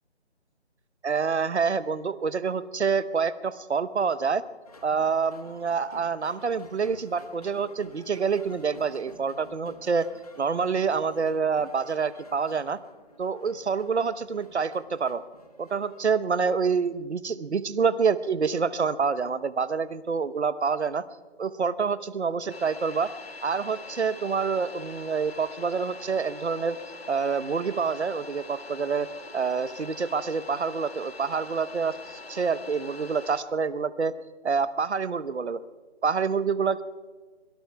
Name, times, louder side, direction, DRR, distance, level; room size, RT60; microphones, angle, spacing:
voice 1, 1.0-4.4 4.8-10.1 10.4-12.8 13.2-15.2 15.6-21.0 21.4-23.1 23.4-26.8 27.1-29.1 29.3-34.1 34.4-35.6 36.0-36.8, right 5 dB, 75° right, 14 dB, 0.9 m, -27 dB
sound 1, 4.6-16.1, left 2 dB, 35° left, 1.3 m, -52 dB
sound 2, 22.5-33.4, left 3 dB, 60° left, 1.7 m, -43 dB
25.5 x 22.5 x 2.3 m, 1.4 s
figure-of-eight pair, 175°, 34 cm